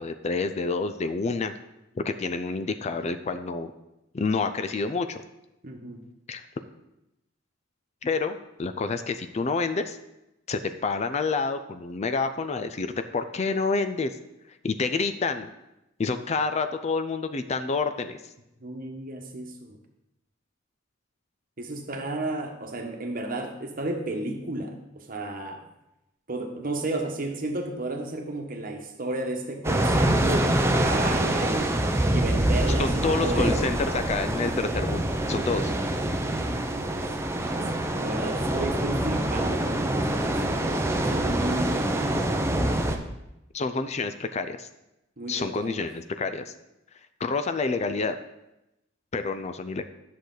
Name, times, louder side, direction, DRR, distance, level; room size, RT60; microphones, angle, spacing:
voice 1, 0.0-1.6 2.0-3.7 4.1-5.2 6.3-6.4 8.0-10.0 10.5-14.1 14.6-15.5 16.0-18.2 32.8-35.7 43.5-44.7 45.3-46.5 47.2-48.1 49.1-49.8, left 4 dB, 35° left, 9 dB, 0.4 m, -28 dB
voice 2, 5.6-6.0 18.6-19.8 21.6-25.6 26.3-31.7 32.1-33.6 36.1-37.0 37.4-42.2 45.2-45.8, right 2 dB, 45° right, 4 dB, 1.2 m, -33 dB
sound 1, 29.6-43.0, right 1 dB, 15° right, 0.6 m, -25 dB
10.5 x 6.5 x 3.9 m, 0.90 s
head